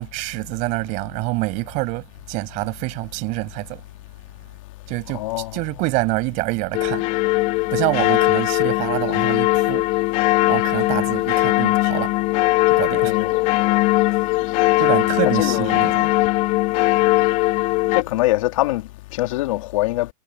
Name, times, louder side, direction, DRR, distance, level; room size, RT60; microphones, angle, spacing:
voice 1, 0.0-3.8 4.9-7.1 7.7-9.9 10.5-12.1 12.7-13.1 14.8-16.1, right 25 dB, 40° right, 7.2 m, -26 dB
voice 2, 5.1-5.6 13.0-13.3 15.2-15.7 17.9-20.1, left 18 dB, 60° left, 3.5 m, -23 dB
sound 1, 6.7-18.0, left 22 dB, 40° left, 3.3 m, -19 dB
hypercardioid pair, 140°, 19 cm